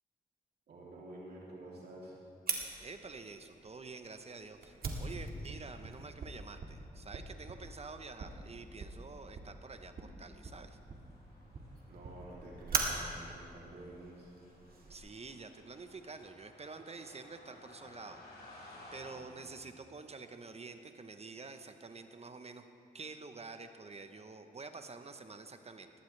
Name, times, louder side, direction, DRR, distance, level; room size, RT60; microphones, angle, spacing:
voice 1, 0.7-2.2 11.9-14.3 19.1-19.5, right 1 dB, 85° right, -5 dB, 3.1 m, -50 dB
Fire, 2.5-15.0, right 4 dB, 70° right, 1.9 m, -42 dB
voice 2, 2.8-10.8 14.9-18.2 18.5-22.6 22.9-25.9, right 4 dB, 40° right, 7 dB, 0.9 m, -48 dB
sound 1, 10.4-19.1, left 2 dB, 85° left, 4.7 m, -58 dB
19.0 x 17.0 x 3.3 m, 2.4 s
cardioid pair, 75°, 16 cm